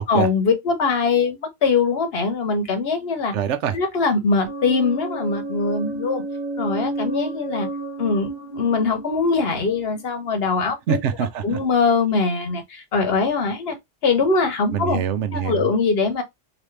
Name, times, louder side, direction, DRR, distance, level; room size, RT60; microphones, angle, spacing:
voice 1, 0.0-3.3 3.7-6.2 6.6-7.7 8.0-11.0 11.4-13.8 14.0-15.0 15.3-16.2, left 4 dB, 60° left, 1.0 m, -22 dB
voice 2, 3.3-3.8 10.9-11.6 14.7-15.7, right 9 dB, 75° right, 1.0 m, -24 dB
sound 1, 4.4-10.3, right 2 dB, 25° right, 0.8 m, -31 dB
3.4 x 2.7 x 3.1 m
omnidirectional pair, 1.2 m